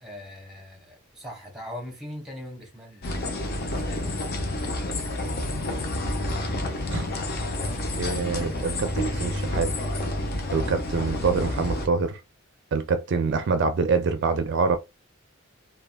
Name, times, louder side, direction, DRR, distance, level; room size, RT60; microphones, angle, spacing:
voice 1, 0.0-4.1, left 1 dB, ahead, 0.9 m, -41 dB
sound 1, 3.0-11.9, left 1 dB, 50° left, 0.6 m, -29 dB
voice 2, 8.0-9.7 10.5-12.2 12.7-14.8, right 4 dB, 60° right, 0.4 m, -25 dB
3.3 x 2.2 x 2.2 m
head